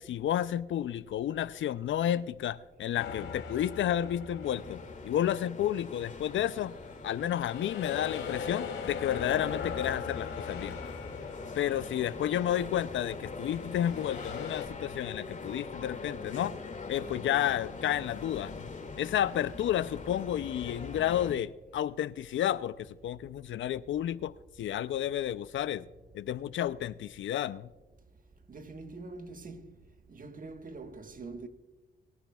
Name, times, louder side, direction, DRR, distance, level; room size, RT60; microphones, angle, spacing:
voice 1, 0.0-6.7 7.0-10.8 11.5-16.6 16.9-18.7 19.0-24.3 24.6-25.9 26.1-27.7, left 11 dB, 70° left, 0.5 m, -31 dB
sound 1, 3.0-5.5 6.0-12.5 13.6-14.7, left 7 dB, 90° left, 2.6 m, -40 dB
sound 2, 4.4-21.3, left 4 dB, 35° left, 2.3 m, -42 dB
voice 2, 28.5-29.8 30.1-31.5, right 3 dB, 40° right, 1.3 m, -44 dB
22.0 x 10.0 x 2.3 m
cardioid pair, 65°, 21 cm